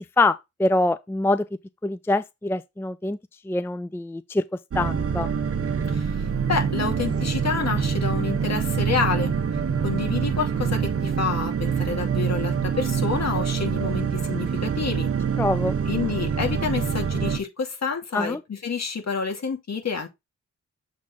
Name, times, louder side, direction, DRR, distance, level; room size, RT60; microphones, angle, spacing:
voice 1, 0.0-1.5 1.8-3.2 3.4-4.4 4.7-5.3 15.4-15.8 18.1-18.4, left 2 dB, 10° left, 0.4 m, -24 dB
sound 1, 4.7-17.4, right 7 dB, 50° right, 1.2 m, -25 dB
voice 2, 5.9-9.3 9.8-15.1 15.9-20.1, left 5 dB, 60° left, 2.5 m, -28 dB
7.4 x 4.1 x 3.8 m
wide cardioid pair, 95°, 31 cm